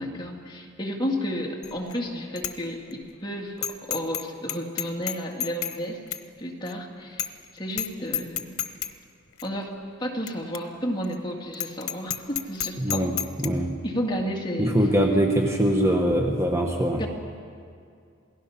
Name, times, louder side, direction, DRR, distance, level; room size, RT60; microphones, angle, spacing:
voice 1, 0.0-6.0 6.4-8.6 9.4-9.7 10.0-13.1 13.8-14.7 17.0-17.1, equal, 20° left, 0 dB, 2.2 m, -32 dB
Bicycle bell, 1.6-2.0 2.4-2.5 2.9-3.0 3.6-4.2 4.5-5.8 6.1-6.2 6.7-6.8 7.2-7.4 7.7-7.9 8.1-8.9 9.4-9.5 10.3-10.4 10.5-10.6 11.0-11.1 11.5-13.5, left 10 dB, 85° left, 1.0 m, -30 dB
voice 2, 12.8-13.2 13.4-13.8 14.6-17.0, right 1 dB, 15° right, 1 dB, 1.2 m, -22 dB
27.5 x 18.0 x 5.8 m, 2.3 s
head